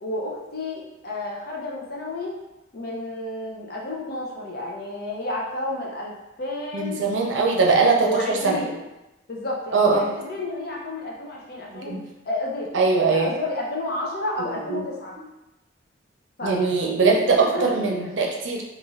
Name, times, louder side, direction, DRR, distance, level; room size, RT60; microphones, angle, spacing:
voice 1, 0.0-2.4 2.7-6.1 6.4-7.0 7.8-8.8 9.3-12.0 12.3-12.7 13.0-15.1 16.4-16.6 17.5-18.1, left 2 dB, 55° left, -2 dB, 0.6 m, -31 dB
voice 2, 6.7-8.6 9.7-10.1 11.9-12.0 12.7-13.3 14.7-14.8 16.4-18.6, right 4 dB, 90° right, 0 dB, 0.5 m, -21 dB
2.5 x 2.4 x 3.1 m, 0.98 s
head